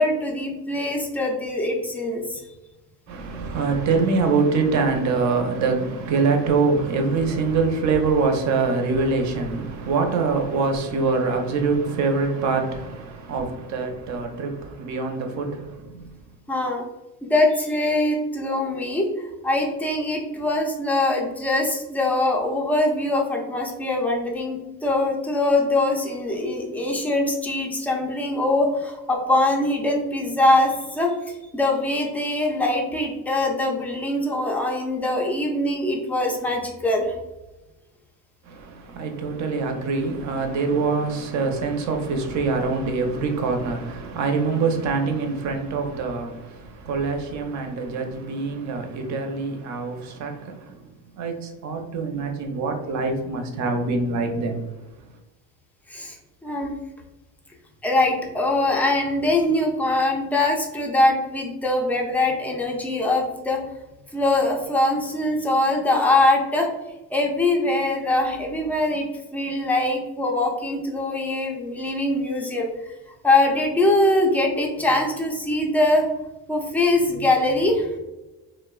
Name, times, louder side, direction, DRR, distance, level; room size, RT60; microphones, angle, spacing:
voice 1, 0.0-2.4 16.5-16.8 17.2-19.1 19.4-37.2 55.9-56.2 56.4-56.7 57.8-63.6 64.1-66.7 67.1-69.1 69.3-72.7 73.2-76.1 76.5-77.9, left 2 dB, 5° left, 0.3 m, -22 dB
voice 2, 3.1-16.1 38.5-50.8 51.1-54.7, right 4 dB, 55° right, 0.6 m, -24 dB
3.0 x 2.0 x 2.3 m
cardioid pair, 120°, 35 cm